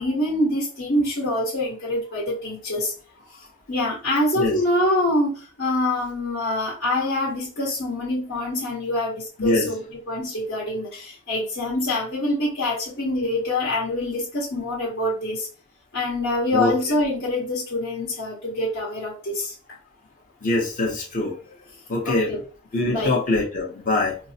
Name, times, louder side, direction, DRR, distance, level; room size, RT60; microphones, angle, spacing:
voice 1, 0.0-2.9 3.3-15.5 15.9-19.8 22.0-22.4 22.9-23.1, left 1 dB, 60° left, -7 dB, 1.1 m, -25 dB
voice 2, 20.4-21.4 21.9-22.3 22.7-24.2, left 2 dB, 40° left, -1 dB, 0.8 m, -23 dB
4.5 x 2.0 x 2.7 m, 0.38 s
head